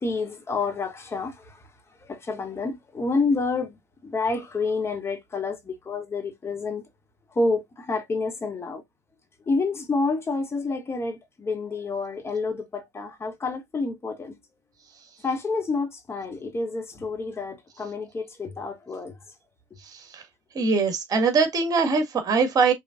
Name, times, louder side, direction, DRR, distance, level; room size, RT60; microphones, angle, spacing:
voice 1, 0.0-1.6 2.0-6.8 7.3-8.8 9.5-14.4 15.2-19.1, left 3 dB, 30° left, 1.9 m, -29 dB
voice 2, 19.9-20.2 20.6-22.7, right 4 dB, 45° right, 1.9 m, -22 dB
5.6 x 3.7 x 2.5 m
hypercardioid pair, 70°, 9 cm